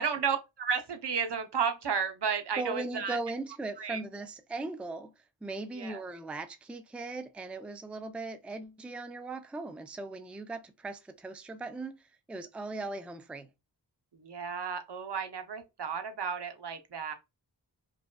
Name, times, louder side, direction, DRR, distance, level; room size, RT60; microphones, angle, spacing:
voice 1, 0.0-3.2 3.8-4.0 5.8-6.0 14.1-17.1, right 6 dB, 65° right, 0.8 m, -33 dB
voice 2, 2.6-13.5, right 3 dB, 5° right, 0.4 m, -39 dB
5.0 x 2.2 x 2.2 m
wide cardioid pair, 50°, 44 cm